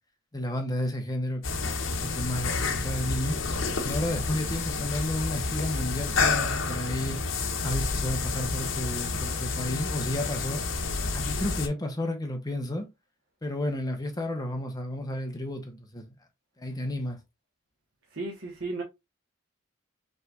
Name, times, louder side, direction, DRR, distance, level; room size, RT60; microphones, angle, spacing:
voice 1, 0.3-3.4 3.8-7.2 7.6-10.6 11.1-12.9 13.4-16.1 16.6-17.2, left 1 dB, 20° left, 0.9 m, -32 dB
sound 1, 1.4-11.7, left 4 dB, 85° left, 0.9 m, -29 dB
voice 2, 18.1-18.8, right 3 dB, 80° right, 1.2 m, -34 dB
5.4 x 3.4 x 2.4 m
head